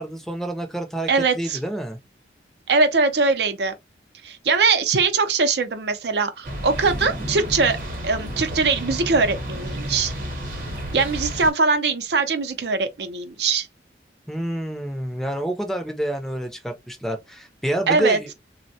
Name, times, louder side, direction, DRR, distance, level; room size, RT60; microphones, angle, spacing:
voice 1, 0.0-2.0 14.3-18.3, right 1 dB, ahead, 0.5 m, -28 dB
voice 2, 1.1-1.6 2.7-3.7 4.2-7.8 8.0-10.1 10.9-13.7 17.9-18.2, right 4 dB, 75° right, 0.5 m, -21 dB
sound 1, 6.4-11.5, equal, 50° right, 0.9 m, -31 dB
3.4 x 2.1 x 2.7 m
head